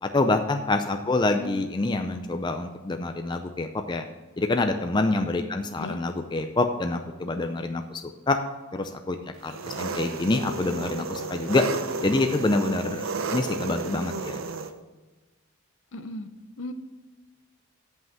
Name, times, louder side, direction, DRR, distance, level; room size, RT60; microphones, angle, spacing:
voice 1, 0.0-4.0 4.4-8.0 8.3-8.4 8.7-9.2 9.4-11.7 12.0-14.4, left 2 dB, 20° left, 6 dB, 0.4 m, -26 dB
Engine, 9.4-14.7, right 3 dB, 70° right, 0.6 m, -33 dB
voice 2, 15.9-16.3 16.6-16.7, left 2 dB, 60° left, 9 dB, 0.7 m, -36 dB
8.1 x 5.6 x 7.3 m, 1.2 s
head